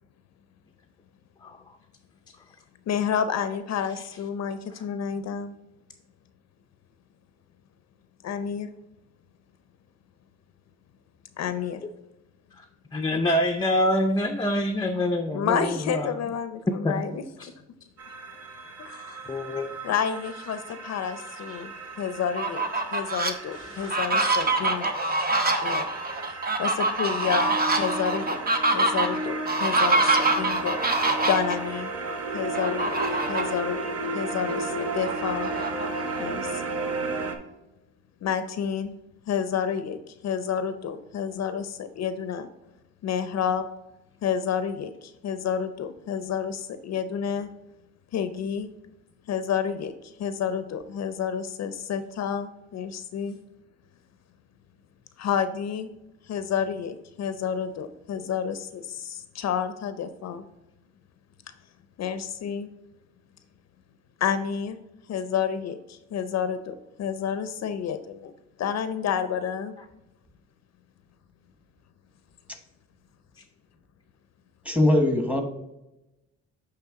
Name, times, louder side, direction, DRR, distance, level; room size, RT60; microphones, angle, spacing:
voice 1, 2.9-5.5 8.2-8.7 11.4-11.8 13.1-13.2 15.3-17.2 18.8-19.2 19.8-22.6 22.9-24.9 25.6-25.9 26.6-30.8 31.3-31.9 32.3-33.0 33.3-35.5 36.2-36.6 38.2-39.0 39.3-42.5 43.0-43.7 44.2-47.5 48.1-48.7 49.3-53.4 55.2-55.9 56.2-60.5 62.0-62.7 64.2-64.8 65.1-68.3 68.6-69.7, left 7 dB, 60° left, 11 dB, 0.6 m, -30 dB
voice 2, 12.9-16.1 16.8-17.0 17.4-17.5 19.3-19.8 21.5-21.6 23.6-23.9 24.4-24.5, left 1 dB, 15° left, 4 dB, 0.5 m, -26 dB
sound 1, 18.0-37.4, right 2 dB, 50° right, 1.0 m, -34 dB
Fowl, 22.2-23.3 23.8-31.6 32.5-33.6 34.0-34.1 34.5-36.2, right 2 dB, 30° right, 1.0 m, -25 dB
voice 3, 74.6-75.4, left 1 dB, 5° right, 4 dB, 1.3 m, -21 dB
8.9 x 3.4 x 3.6 m, 0.95 s
cardioid pair, 90°, 30 cm